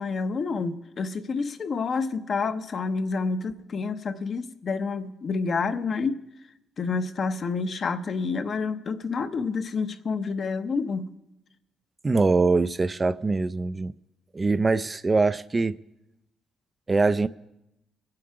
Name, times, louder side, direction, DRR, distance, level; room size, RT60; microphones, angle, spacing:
voice 1, 0.0-6.2 6.8-11.1, left 4 dB, 50° left, 0.7 m, -28 dB
voice 2, 12.0-13.9 14.3-15.8 16.9-17.3, right 3 dB, 25° right, 0.3 m, -23 dB
21.0 x 7.8 x 4.7 m
cardioid pair, 90°, 0 cm